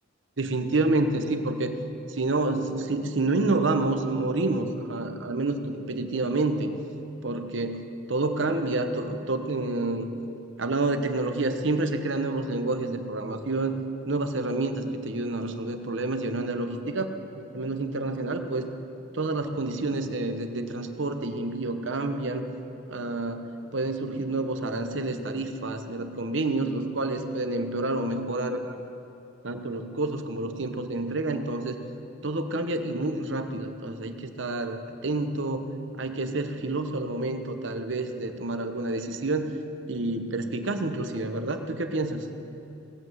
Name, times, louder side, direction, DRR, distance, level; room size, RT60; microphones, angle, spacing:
voice 1, 0.4-1.7 2.1-6.7 7.2-10.1 10.6-13.8 14.1-17.1 17.4-18.7 19.1-22.5 22.9-23.4 23.7-28.7 29.4-31.8 32.2-35.7 36.0-39.5 39.9-42.2, right 2 dB, 65° right, 7 dB, 1.0 m, -28 dB
18.0 x 7.9 x 7.8 m, 2.8 s
head